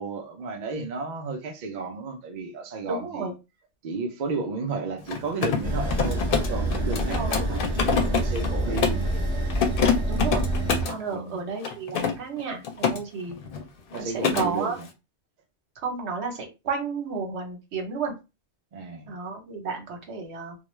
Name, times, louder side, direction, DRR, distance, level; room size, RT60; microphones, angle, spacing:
voice 1, 0.0-3.3 3.8-9.3 11.0-11.4 13.9-14.9 18.7-19.1, right 3 dB, 55° right, 0.5 m, -33 dB
voice 2, 2.9-3.3 6.9-7.4 10.1-10.4 10.8-13.4 14.0-14.8 15.8-18.1 19.1-20.5, right 5 dB, 75° right, 1.1 m, -32 dB
Mechanisms, 5.0-9.1 9.5-11.0 11.6-13.0 13.3-13.6 13.9-14.5, left 6 dB, 65° left, 0.7 m, -26 dB
sound 1, 5.6-10.8, right 1 dB, 5° left, 0.7 m, -27 dB
2.3 x 2.1 x 3.0 m
omnidirectional pair, 1.1 m